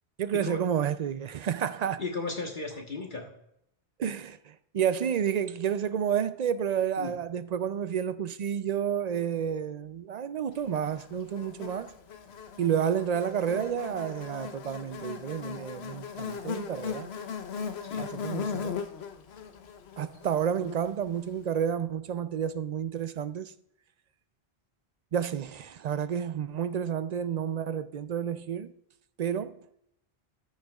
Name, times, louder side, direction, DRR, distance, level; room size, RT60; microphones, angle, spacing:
voice 1, 0.2-2.0 4.0-11.9 12.6-17.1 18.0-18.8 20.0-23.5 25.1-28.7 29.2-29.7, right 8 dB, 55° right, 0.5 m, -30 dB
voice 2, 2.0-3.3 7.0-7.2 17.8-18.1, left 3 dB, 50° left, 1.4 m, -35 dB
Buzz, 10.9-21.3, left 6 dB, 85° left, 1.1 m, -38 dB
14.0 x 6.5 x 2.3 m
omnidirectional pair, 1.0 m